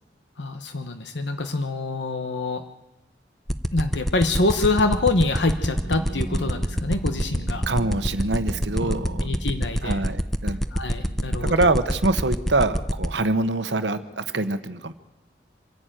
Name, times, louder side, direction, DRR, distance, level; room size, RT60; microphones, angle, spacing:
voice 1, 0.4-2.6 3.7-7.6 8.8-8.9 9.2-10.0 10.5-11.7, left 2 dB, 80° left, 8 dB, 1.2 m, -25 dB
sound 1, 3.5-13.1, equal, ahead, 0.8 m, -24 dB
sound 2, 4.2-9.6, right 1 dB, 20° right, 1.6 m, -38 dB
voice 2, 7.7-9.3 9.8-10.6 11.1-14.9, right 2 dB, 75° right, 10 dB, 1.1 m, -25 dB
25.5 x 11.0 x 9.1 m, 0.93 s
head